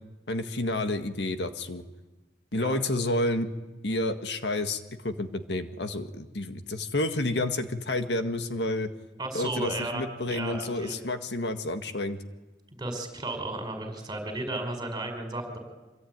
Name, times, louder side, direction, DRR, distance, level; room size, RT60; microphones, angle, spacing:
voice 1, 0.3-1.8 2.5-3.5 3.8-8.9 9.3-12.2, left 2 dB, 75° left, 8 dB, 1.8 m, -30 dB
voice 2, 9.2-11.0 12.8-15.6, right 2 dB, 25° right, 5 dB, 5.6 m, -34 dB
26.0 x 23.5 x 9.5 m, 1.1 s
head